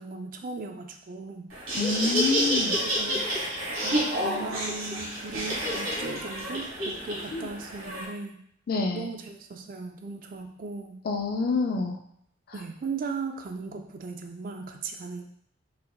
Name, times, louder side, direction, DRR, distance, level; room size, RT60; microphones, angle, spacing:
voice 1, 0.0-1.5 2.8-3.5 3.8-8.4 8.9-11.0 12.5-15.2, right 4 dB, 40° right, 5 dB, 0.3 m, -37 dB
Laughter, 1.5-8.0, equal, 80° right, 1.3 m, -29 dB
voice 2, 1.7-2.8 7.3-7.5 8.7-9.1 11.0-12.0, left 4 dB, 45° left, 3 dB, 0.4 m, -27 dB
4.0 x 3.3 x 2.3 m, 0.69 s
head